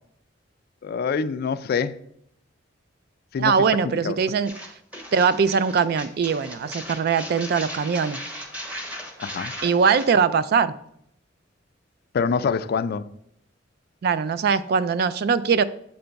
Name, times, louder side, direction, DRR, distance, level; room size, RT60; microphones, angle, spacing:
voice 1, 0.8-2.0 3.3-3.5 3.8-4.2 9.2-9.5 12.1-13.1, left 5 dB, 50° left, 0.3 m, -25 dB
voice 2, 3.4-4.5 5.1-8.2 9.6-10.7 14.0-15.6, right 6 dB, 55° right, 0.3 m, -21 dB
sound 1, 4.5-10.1, equal, 5° right, 0.8 m, -37 dB
7.7 x 3.4 x 4.0 m
head